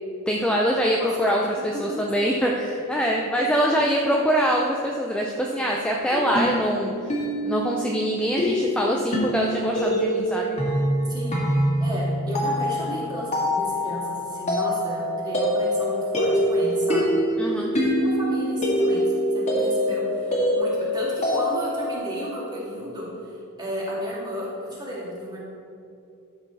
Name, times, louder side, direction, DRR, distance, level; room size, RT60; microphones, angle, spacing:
voice 1, 0.3-1.4 1.8-6.9 7.4-10.6 17.4-17.7, equal, 5° left, -2 dB, 0.5 m, -24 dB
voice 2, 1.0-1.4 2.2-2.5 3.4-4.1 11.1-11.4 11.8-17.1 17.7-25.4, equal, 20° right, -6 dB, 2.4 m, -33 dB
sound 1, 6.1-22.0, equal, 30° left, 1.8 m, -25 dB
12.5 x 7.0 x 4.1 m, 2.6 s
head